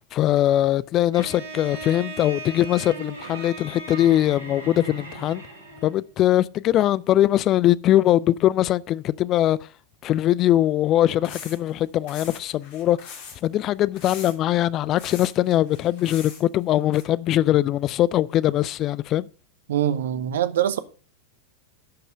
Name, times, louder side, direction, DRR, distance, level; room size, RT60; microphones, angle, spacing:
voice 1, 0.1-5.4 5.8-9.6 10.0-13.2 13.4-19.3, left 13 dB, 35° left, 0.4 m, -21 dB
Bowed string instrument, 1.1-6.0, right 3 dB, 75° right, 3.4 m, -38 dB
sound 1, 11.2-11.7 12.1-13.4 13.9-14.6 14.9-16.4 16.9-17.0, left 6 dB, 50° left, 3.1 m, -41 dB
voice 2, 19.7-20.8, right 11 dB, 60° right, 0.9 m, -23 dB
11.5 x 5.5 x 6.4 m
figure-of-eight pair, 90°, 0 cm